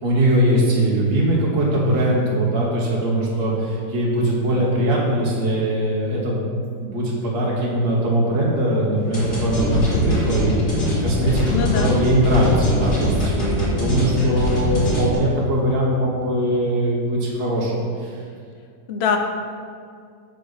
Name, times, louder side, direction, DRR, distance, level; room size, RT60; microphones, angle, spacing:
voice 1, 0.0-6.5 6.8-18.2, right 1 dB, 40° right, -4 dB, 1.3 m, -21 dB
sound 1, 9.1-15.1, equal, 80° left, 3.1 m, -22 dB
voice 2, 11.5-12.0 18.9-19.2, left 7 dB, 55° left, 4 dB, 0.8 m, -22 dB
7.3 x 5.4 x 5.7 m, 2.2 s
omnidirectional pair, 1.9 m